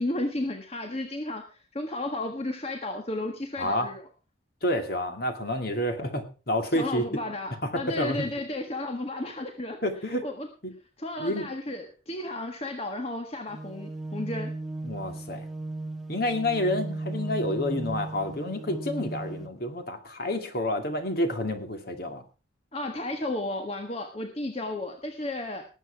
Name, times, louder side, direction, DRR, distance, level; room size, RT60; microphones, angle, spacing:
voice 1, 0.0-4.0 6.7-9.8 10.2-10.5 11.0-14.5 22.7-25.6, left 1 dB, 30° left, 4 dB, 1.5 m, -33 dB
voice 2, 3.6-3.9 4.6-7.1 7.6-8.3 9.8-10.2 10.6-10.7 11.2-11.5 14.8-15.5 16.1-22.2, left 1 dB, 50° left, 6 dB, 2.4 m, -29 dB
sound 1, 13.5-19.5, right 2 dB, ahead, 1.6 m, -36 dB
19.0 x 8.1 x 4.6 m, 0.35 s
head